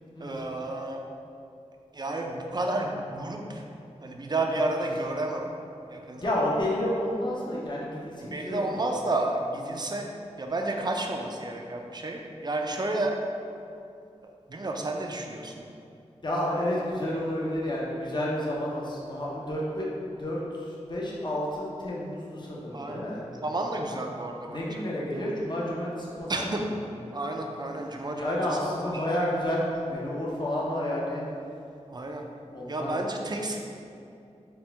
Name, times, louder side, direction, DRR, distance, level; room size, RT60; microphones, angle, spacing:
voice 1, 0.2-1.0 1.9-3.7 4.0-5.5 5.9-6.5 8.2-10.1 10.4-13.2 14.2-15.6 22.7-23.0 23.3-24.6 25.2-25.3 26.3-26.6 27.1-28.6 28.9-29.1 31.9-32.3 32.7-33.6, right 2 dB, 35° right, 2 dB, 0.4 m, -31 dB
voice 2, 6.1-8.7 16.2-23.2 24.5-26.5 28.1-31.2 32.5-33.0, left 1 dB, 40° left, -5 dB, 0.8 m, -30 dB
4.4 x 2.2 x 3.3 m, 2.6 s
wide cardioid pair, 55°, 12 cm